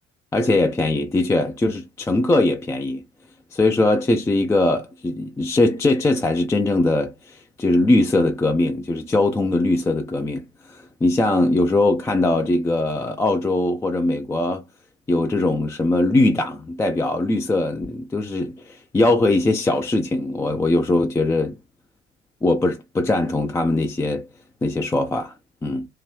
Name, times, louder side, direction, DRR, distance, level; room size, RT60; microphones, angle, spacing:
voice 1, 0.3-3.0 3.5-14.6 15.1-21.6 22.4-24.3 24.6-25.3 25.6-25.9, left 2 dB, 10° left, 0.4 m, -21 dB
2.8 x 2.8 x 3.2 m
figure-of-eight pair, 60°, 37 cm